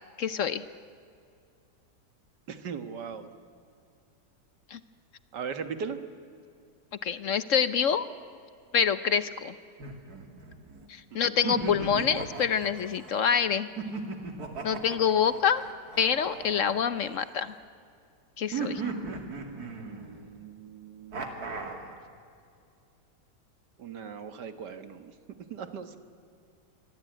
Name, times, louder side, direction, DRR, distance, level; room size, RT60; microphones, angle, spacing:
voice 1, 0.2-0.6 4.7-4.8 7.0-8.1 8.7-9.5 10.9-13.7 14.6-15.6 16.0-17.5 18.4-18.8, left 7 dB, 55° left, 14 dB, 1.0 m, -26 dB
voice 2, 2.5-3.3 5.3-6.0 11.1-11.5 14.5-14.7 19.5-21.2 23.8-25.1 25.5-26.0, right 6 dB, 85° right, 9 dB, 2.1 m, -39 dB
sound 1, 9.8-10.9 11.4-13.1 13.8-17.5 18.5-20.3 21.1-21.9, right 4 dB, 65° right, 3.0 m, -37 dB
26.5 x 23.5 x 9.2 m, 2.4 s
omnidirectional pair, 1.8 m